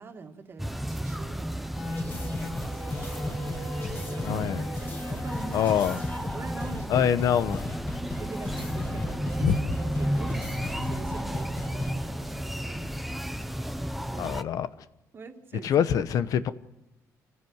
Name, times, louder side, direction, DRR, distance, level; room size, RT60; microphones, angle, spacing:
voice 1, 0.0-7.7 8.0-9.5 10.0-12.9 14.1-14.3 15.1-16.0, right 4 dB, 35° right, 2.3 m, -45 dB
sound 1, 0.6-14.4, equal, ahead, 0.8 m, -33 dB
sound 2, 1.7-11.9, left 2 dB, 30° left, 4.2 m, -36 dB
Musical instrument, 2.2-6.8 8.1-13.0 14.1-14.5, right 7 dB, 65° right, 2.5 m, -48 dB
voice 2, 4.2-4.6 5.5-6.0 6.9-7.6 9.4-9.6 14.2-14.7 15.6-16.5, left 9 dB, 70° left, 1.0 m, -24 dB
27.5 x 15.5 x 8.1 m
cardioid pair, 140°, 6 cm